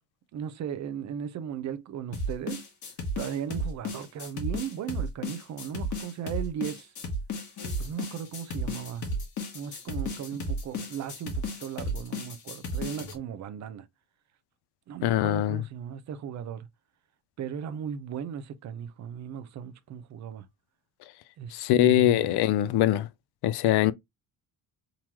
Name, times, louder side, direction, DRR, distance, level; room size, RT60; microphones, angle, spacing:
voice 1, 0.3-2.7 3.2-6.9 7.8-9.1 9.5-13.9 14.9-16.7 17.4-20.5 21.4-22.3, right 8 dB, 45° right, 0.6 m, -37 dB
sound 1, 2.1-13.2, equal, 50° left, 1.4 m, -33 dB
voice 2, 15.0-15.6 21.5-23.1 23.4-23.9, left 13 dB, 80° left, 0.6 m, -22 dB
3.8 x 3.0 x 2.9 m
cardioid pair, 170°, 39 cm